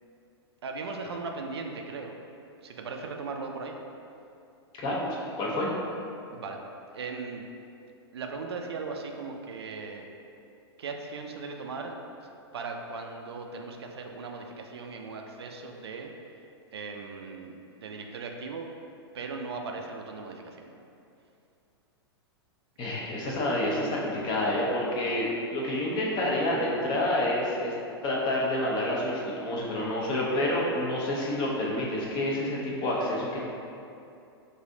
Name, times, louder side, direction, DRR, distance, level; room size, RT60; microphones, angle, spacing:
voice 1, 0.6-2.1 2.6-3.8 6.3-6.6 6.9-7.4 8.1-10.0 10.8-12.0 12.2-16.1 16.7-18.7 19.1-20.7, right 4 dB, 70° right, 3 dB, 0.4 m, -38 dB
voice 2, 5.4-5.7 22.8-27.7 28.0-33.4, left 1 dB, 35° left, -4 dB, 0.8 m, -28 dB
3.2 x 2.6 x 3.8 m, 2.7 s
figure-of-eight pair, 100°, 14 cm